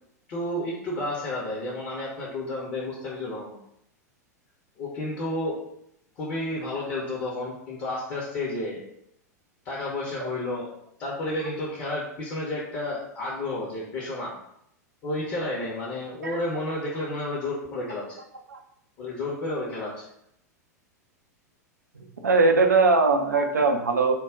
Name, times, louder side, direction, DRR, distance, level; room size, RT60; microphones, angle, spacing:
voice 1, 0.3-3.6 4.8-5.5 6.2-8.8 9.6-10.7 11.0-14.3 15.0-18.2 19.0-20.1, left 1 dB, 35° left, -5 dB, 0.7 m, -31 dB
voice 2, 22.2-24.1, right 3 dB, 75° right, 4 dB, 0.4 m, -20 dB
2.3 x 2.1 x 3.5 m, 0.76 s
figure-of-eight pair, 90°, 9 cm